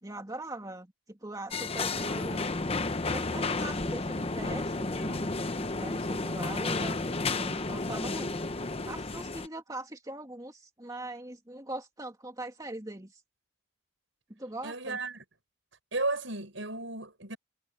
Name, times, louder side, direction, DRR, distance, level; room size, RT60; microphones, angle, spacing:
voice 1, 0.0-2.5 3.1-5.3 5.6-13.2 14.3-15.0, right 2 dB, 20° right, 2.7 m, -41 dB
sound 1, 1.5-9.5, left 3 dB, 30° left, 0.9 m, -32 dB
voice 2, 14.6-15.2 15.9-17.4, right 2 dB, 65° right, 7.5 m, -34 dB
head